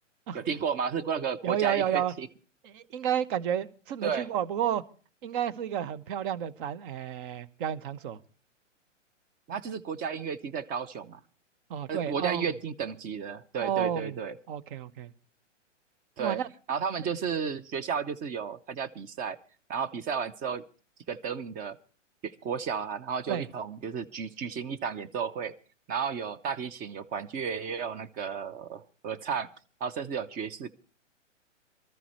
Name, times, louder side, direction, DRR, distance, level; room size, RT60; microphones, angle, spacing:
voice 1, 0.3-2.3 4.0-4.3 9.5-11.2 11.9-14.3 16.2-16.4 16.7-19.4 19.7-20.6 21.1-21.8 22.2-25.5 25.9-29.5 29.8-30.7, right 6 dB, 25° right, 0.8 m, -33 dB
voice 2, 1.4-2.1 2.6-4.8 5.2-8.2 11.7-12.5 13.6-14.2 14.5-15.1 16.2-16.5 23.3-23.5, right 9 dB, 45° right, 1.2 m, -31 dB
24.0 x 14.0 x 3.1 m
hypercardioid pair, 120°, 37 cm